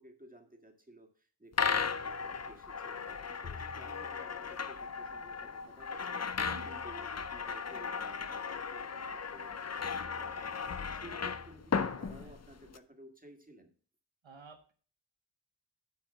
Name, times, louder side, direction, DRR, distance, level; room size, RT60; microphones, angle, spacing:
voice 1, 0.0-13.7, right 1 dB, 20° right, 3 dB, 1.8 m, -55 dB
sound 1, 1.5-12.8, left 5 dB, 35° left, 0.6 m, -36 dB
sound 2, 4.5-11.6, left 2 dB, 65° left, 3.4 m, -65 dB
voice 2, 6.5-6.8 12.1-12.3 14.2-14.7, right 4 dB, 90° right, 4 dB, 1.0 m, -53 dB
9.3 x 5.1 x 5.9 m, 0.42 s
wide cardioid pair, 55°, 44 cm